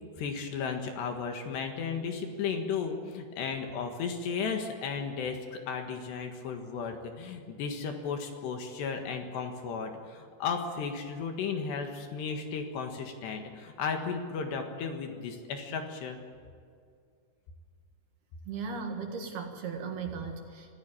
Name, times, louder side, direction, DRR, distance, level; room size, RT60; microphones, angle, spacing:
voice 1, 0.2-16.2, left 5 dB, 65° left, 4 dB, 3.6 m, -34 dB
voice 2, 18.5-20.7, right 5 dB, 60° right, 3 dB, 3.4 m, -37 dB
25.5 x 15.0 x 9.0 m, 2.2 s
omnidirectional pair, 5.6 m